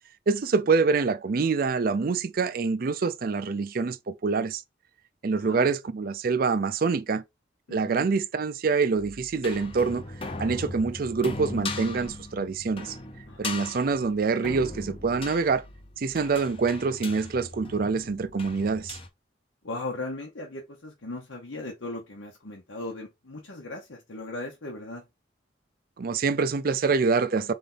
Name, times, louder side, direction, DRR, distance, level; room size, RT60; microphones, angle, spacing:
voice 1, 0.3-4.6 5.2-7.2 7.7-10.0 10.4-13.0 13.4-15.6 16.0-19.0 26.0-27.5, right 4 dB, 50° right, 0.4 m, -25 dB
voice 2, 7.7-8.1 13.3-13.7 19.6-25.0, left 2 dB, 80° left, 1.0 m, -38 dB
sound 1, 9.0-19.1, left 2 dB, 30° left, 0.7 m, -39 dB
4.0 x 3.4 x 3.8 m
head